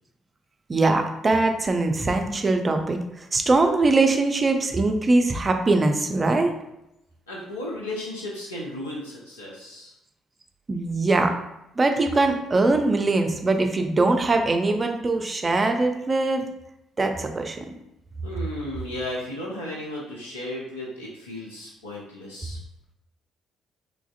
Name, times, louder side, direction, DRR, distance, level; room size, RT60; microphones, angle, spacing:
voice 1, 0.7-6.5 10.7-11.3 11.8-16.5 17.0-17.6, right 2 dB, 30° right, 5 dB, 0.4 m, -22 dB
voice 2, 7.3-9.9 18.2-22.6, left 1 dB, 85° left, -5 dB, 0.4 m, -34 dB
3.2 x 2.5 x 2.4 m, 0.86 s
figure-of-eight pair, 45°, 0 cm